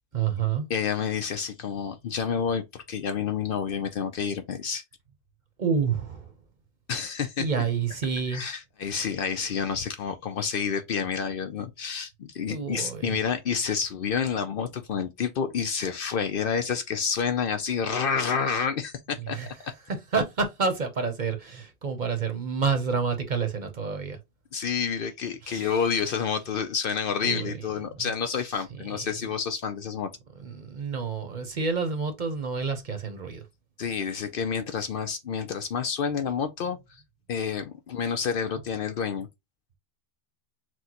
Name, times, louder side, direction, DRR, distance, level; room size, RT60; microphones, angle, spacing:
voice 1, 0.1-0.7 5.6-6.3 7.4-8.4 12.5-13.2 19.2-19.5 19.9-24.2 25.4-25.8 27.2-27.7 28.8-29.0 30.4-33.4, right 5 dB, 45° right, 0.8 m, -29 dB
voice 2, 0.7-4.8 6.9-7.5 8.3-19.4 19.6-19.7 24.5-30.1 33.8-37.0 37.3-39.3, left 6 dB, 60° left, 0.7 m, -29 dB
6.1 x 2.1 x 2.8 m
omnidirectional pair, 1.2 m